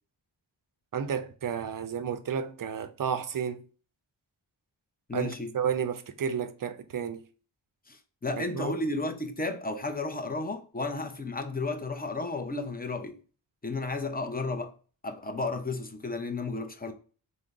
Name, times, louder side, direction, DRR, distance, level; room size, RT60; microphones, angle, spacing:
voice 1, 0.9-3.6 5.1-7.2 8.4-8.7, right 7 dB, 45° right, 0.5 m, -32 dB
voice 2, 5.1-5.5 7.9-13.2 13.6-14.7 15.0-16.9, left 3 dB, 20° left, 0.5 m, -33 dB
3.7 x 2.1 x 3.3 m
cardioid pair, 55°, 46 cm